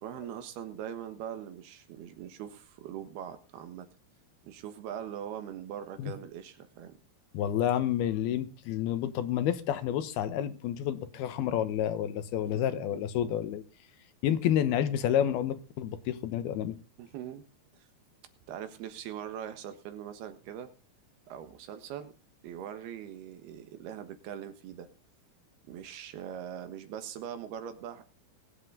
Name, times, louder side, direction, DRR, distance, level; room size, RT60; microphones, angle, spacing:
voice 1, 0.0-3.9 4.4-7.0 12.5-12.6 12.9-13.0 17.0-17.5 17.7-17.9 18.5-20.7 21.3-22.1 22.4-24.9 25.6-28.0, right 9 dB, 90° right, 3.4 m, -41 dB
voice 2, 7.3-13.6 14.2-16.8, left 10 dB, 85° left, 3.1 m, -29 dB
21.5 x 8.2 x 3.9 m
omnidirectional pair, 4.4 m